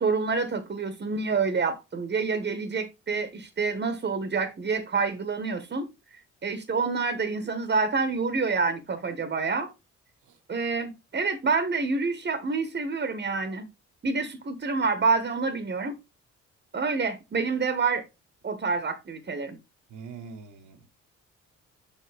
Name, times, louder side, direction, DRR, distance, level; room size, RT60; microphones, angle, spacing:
voice 1, 0.0-5.9 6.4-9.7 10.5-13.7 14.0-16.0 16.7-18.0 18.4-19.6, right 4 dB, 35° right, 1.2 m, -27 dB
voice 2, 19.9-20.9, right 5 dB, 80° right, 1.4 m, -43 dB
7.1 x 5.6 x 3.4 m
cardioid pair, 90°, 30 cm